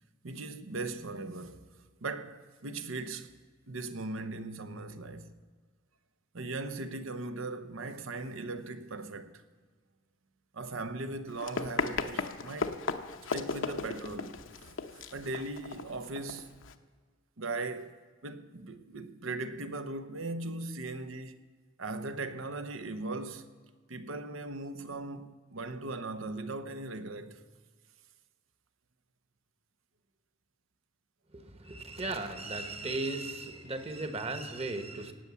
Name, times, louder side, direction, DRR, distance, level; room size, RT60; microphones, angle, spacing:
voice 1, 0.2-1.6 2.0-3.4 3.7-5.4 6.3-9.4 10.5-12.8 13.3-14.4 14.9-16.5 17.4-18.0 18.2-21.4 21.8-23.5 23.9-27.4, right 2 dB, 80° right, 1.0 m, -39 dB
Run, 11.3-16.7, left 4 dB, 70° left, 0.8 m, -36 dB
voice 2, 31.3-35.1, right 2 dB, 30° right, 1.3 m, -36 dB
17.5 x 8.5 x 7.0 m
head